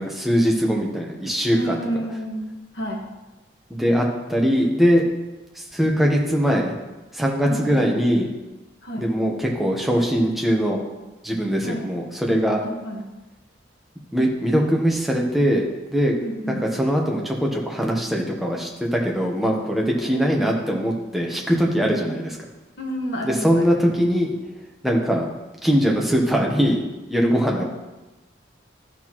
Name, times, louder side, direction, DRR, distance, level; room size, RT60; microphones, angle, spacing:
voice 1, 0.0-1.8 3.7-5.0 5.6-6.7 7.1-8.3 9.0-10.8 11.2-12.6 14.1-15.6 15.9-16.1 16.5-22.3 23.2-24.3 24.8-25.2 25.6-26.8 27.1-27.6, equal, ahead, -1 dB, 1.0 m, -21 dB
voice 2, 1.5-2.5 2.7-3.0 7.4-7.9 8.8-9.1 11.6-11.9 12.6-13.0 16.2-16.7 20.0-20.1 22.0-22.1 22.8-23.9 27.5-27.6, equal, 65° left, -1 dB, 1.5 m, -30 dB
12.5 x 6.0 x 3.0 m, 1.1 s
head